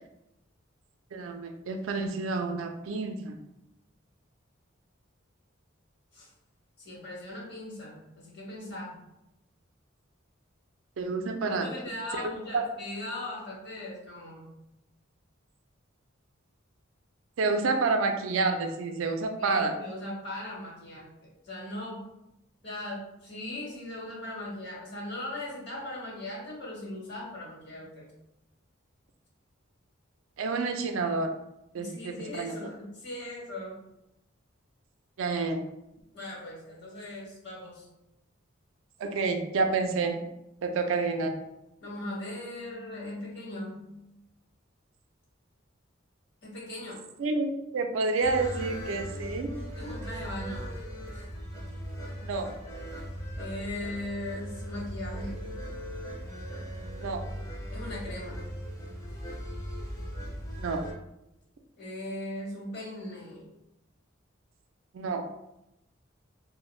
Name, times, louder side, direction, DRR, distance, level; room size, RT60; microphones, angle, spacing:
voice 1, 1.1-3.4 11.0-11.7 12.5-12.6 17.4-19.7 30.4-31.3 31.7-32.6 35.2-35.6 39.0-40.2 40.6-41.4 47.2-49.5 52.2-52.5 57.0-57.2 60.6-60.8 64.9-65.2, right 3 dB, 75° right, 5 dB, 0.4 m, -29 dB
voice 2, 6.8-8.9 11.5-14.5 19.4-21.1 21.4-22.0 22.6-28.1 31.7-33.8 36.1-37.9 41.8-44.0 46.4-47.0 49.8-50.7 51.1-51.3 53.3-55.4 57.7-58.4 61.8-63.5, left 1 dB, 55° left, -5 dB, 1.0 m, -39 dB
sound 1, 48.2-60.9, equal, 15° left, 0.5 m, -38 dB
2.4 x 2.1 x 3.0 m, 0.87 s
head